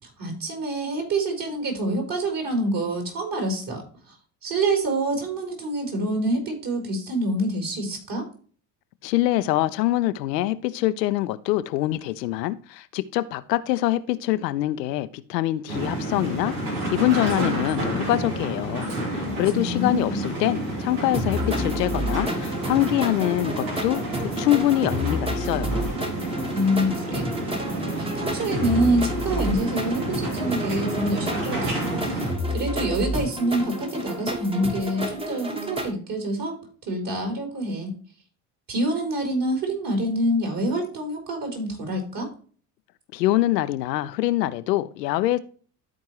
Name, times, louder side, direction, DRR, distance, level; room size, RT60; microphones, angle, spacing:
voice 1, 0.2-3.8 4.1-4.2 4.4-8.3 19.2-20.2 26.5-27.3 27.7-32.0 32.5-36.6 36.9-37.9 38.7-42.3, right 1 dB, 45° right, 4.1 m, -26 dB
voice 2, 9.0-16.5 16.9-24.0 24.4-25.9 43.1-45.4, left 15 dB, 80° left, 0.7 m, -24 dB
sound 1, 15.7-32.3, right 1 dB, 80° right, 2.7 m, -30 dB
sound 2, 21.1-35.9, equal, 10° right, 1.3 m, -30 dB
13.0 x 4.6 x 3.0 m
hypercardioid pair, 65°, 49 cm